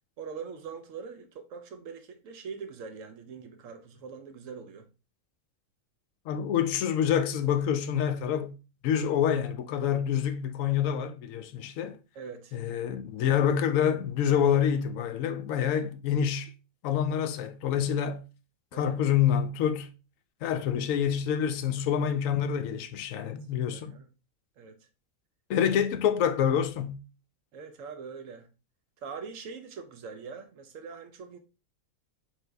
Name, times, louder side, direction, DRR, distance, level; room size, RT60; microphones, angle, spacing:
voice 1, 0.2-4.9 12.1-12.6 18.7-19.0 21.8-22.0 23.1-23.4 23.7-24.1 24.6-24.9 27.5-28.5 29.0-31.4, right 5 dB, 65° right, 0.9 m, -43 dB
voice 2, 6.3-8.5 8.8-12.0 12.5-16.5 16.8-18.2 18.7-19.9 20.4-23.9 25.5-27.0, left 8 dB, 70° left, 0.9 m, -27 dB
4.4 x 3.3 x 3.3 m
omnidirectional pair, 1.6 m